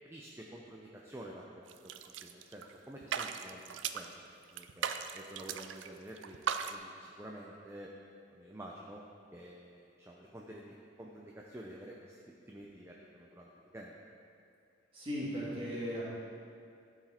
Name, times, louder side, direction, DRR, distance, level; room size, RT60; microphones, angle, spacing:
voice 1, 0.0-4.1 4.5-6.4 6.7-7.9 8.3-9.0 9.3-12.2 12.5-14.0, right 1 dB, 15° right, -2 dB, 0.5 m, -49 dB
sound 1, 1.7-2.7 3.0-4.1 4.6-5.9 6.2-6.8, right 7 dB, 90° right, 0.4 m, -37 dB
voice 2, 14.9-16.1, equal, 30° right, -7 dB, 2.0 m, -37 dB
12.0 x 4.8 x 4.3 m, 2.4 s
head